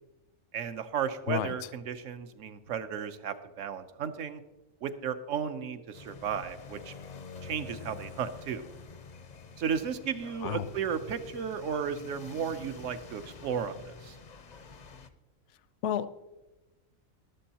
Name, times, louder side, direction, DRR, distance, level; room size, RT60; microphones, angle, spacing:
voice 1, 0.5-4.4 4.8-6.9 7.4-8.6 9.6-14.2, right 7 dB, 70° right, 11 dB, 1.1 m, -34 dB
sound 1, 5.9-15.1, left 5 dB, 45° left, 0.5 m, -48 dB
voice 2, 15.8-16.1, left 9 dB, 70° left, 14 dB, 0.8 m, -30 dB
13.0 x 12.0 x 2.9 m, 1.1 s
omnidirectional pair, 1.4 m